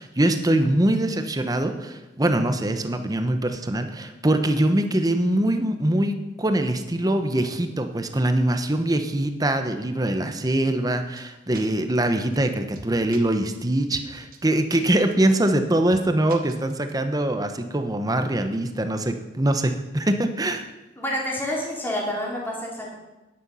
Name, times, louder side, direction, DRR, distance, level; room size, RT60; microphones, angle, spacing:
voice 1, 0.0-20.7, right 1 dB, 20° right, 7 dB, 0.9 m, -23 dB
sound 1, 11.2-11.3 11.6-11.7 12.0-12.1 12.3-12.4 12.7-13.2 13.5-13.6 13.9-14.1 14.3-14.4 14.7-14.8 15.1-15.2 15.5-15.6 15.9-16.0 16.3-16.9, right 3 dB, 55° right, 1.3 m, -41 dB
voice 2, 21.0-22.9, left 1 dB, 10° left, -3 dB, 2.6 m, -28 dB
10.5 x 9.9 x 5.6 m, 1.0 s
head